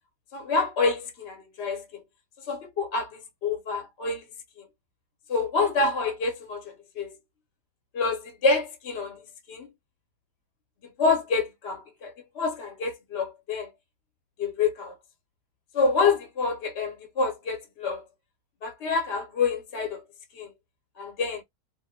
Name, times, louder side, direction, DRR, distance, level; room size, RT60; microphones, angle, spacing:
voice 1, 0.3-2.0 2.5-4.2 5.3-7.1 7.9-9.2 9.5-9.7 11.0-13.7 14.4-14.9 15.7-18.0 18.6-20.0 20.3-20.5 21.0-21.4, left 4 dB, 60° left, 0.8 m, -27 dB
2.3 x 2.0 x 2.6 m
omnidirectional pair, 1.4 m